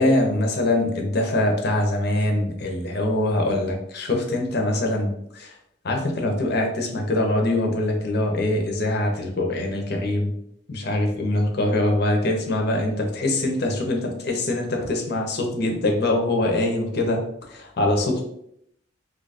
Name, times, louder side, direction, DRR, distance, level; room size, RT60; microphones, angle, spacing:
voice 1, 0.0-5.5 5.8-10.3 10.7-17.2 17.5-18.2, left 1 dB, 55° left, 2 dB, 0.7 m, -23 dB
2.8 x 2.4 x 4.0 m, 0.74 s
head